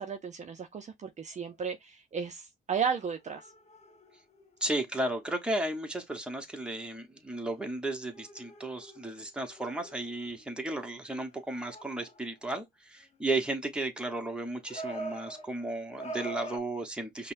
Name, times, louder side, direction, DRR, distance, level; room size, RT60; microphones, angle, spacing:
voice 1, 0.0-3.4, right 6 dB, 35° right, 0.5 m, -34 dB
sound 1, 1.3-1.5 2.9-5.4 5.7-5.9 7.5-7.6 8.1-10.7 11.3-12.3 14.6-16.6, right 2 dB, 35° left, 0.8 m, -44 dB
voice 2, 4.6-17.3, right 2 dB, 5° right, 1.0 m, -34 dB
5.3 x 2.2 x 2.5 m
cardioid pair, 90°, 20 cm